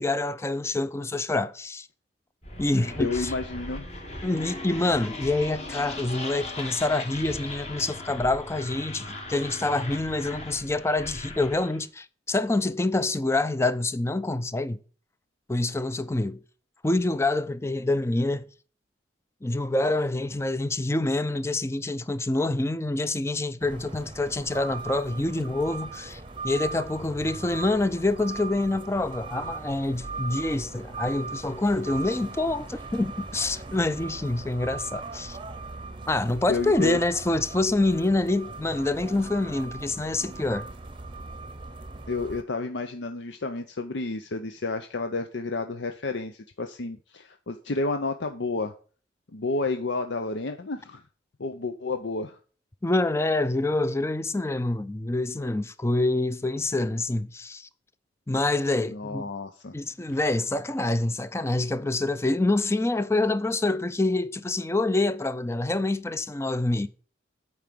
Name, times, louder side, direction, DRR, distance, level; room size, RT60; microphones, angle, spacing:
voice 1, 0.0-1.9 2.6-3.3 4.2-14.8 15.5-16.4 16.8-18.5 19.4-35.4 36.1-40.7 52.8-57.7 58.3-59.3 59.7-66.9, left 2 dB, 15° left, 0.5 m, -26 dB
sound 1, 2.4-11.8, left 2 dB, 35° left, 1.8 m, -38 dB
voice 2, 3.0-3.9 36.5-37.0 42.1-48.7 49.3-51.0 51.4-52.4 58.9-59.7, left 3 dB, 75° left, 0.7 m, -30 dB
sound 2, 23.6-42.4, right 3 dB, 25° right, 0.8 m, -39 dB
8.7 x 4.8 x 7.6 m
head